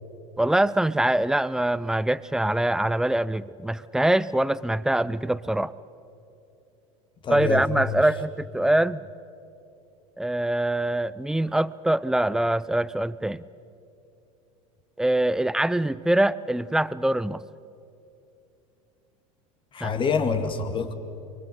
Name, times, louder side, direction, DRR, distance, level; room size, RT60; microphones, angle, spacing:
voice 1, 0.4-5.7 7.3-9.0 10.2-13.4 15.0-17.4 19.8-19.9, right 1 dB, 5° right, 19 dB, 0.5 m, -24 dB
voice 2, 7.2-7.6 19.7-20.9, left 5 dB, 30° left, 8 dB, 2.1 m, -26 dB
29.5 x 24.0 x 6.7 m, 2.7 s
figure-of-eight pair, 75°, 18 cm